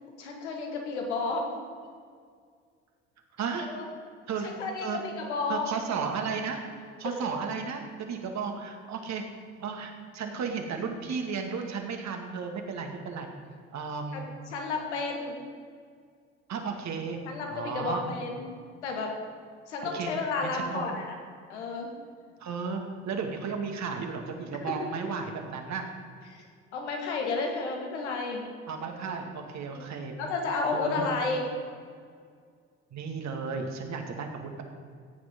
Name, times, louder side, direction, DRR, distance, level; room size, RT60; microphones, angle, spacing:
voice 1, 0.2-1.5 3.6-3.8 4.4-5.7 14.1-15.4 17.2-18.5 18.8-19.2 19.7-21.2 21.5-21.9 24.8-24.9 26.3-26.4 26.7-28.4 29.7-31.5, left 3 dB, 85° left, 1 dB, 1.9 m, -32 dB
voice 2, 3.4-3.7 4.3-4.5 4.8-5.0 5.5-6.6 7.0-9.2 9.6-13.3 13.7-14.2 16.5-17.2 17.5-18.0 19.8-20.1 20.5-20.9 22.4-25.9 26.2-26.3 28.7-30.1 30.7-31.1 32.9-34.6, right 5 dB, 55° right, 3 dB, 2.1 m, -34 dB
15.0 x 8.8 x 5.2 m, 2.1 s
hypercardioid pair, 55°, 34 cm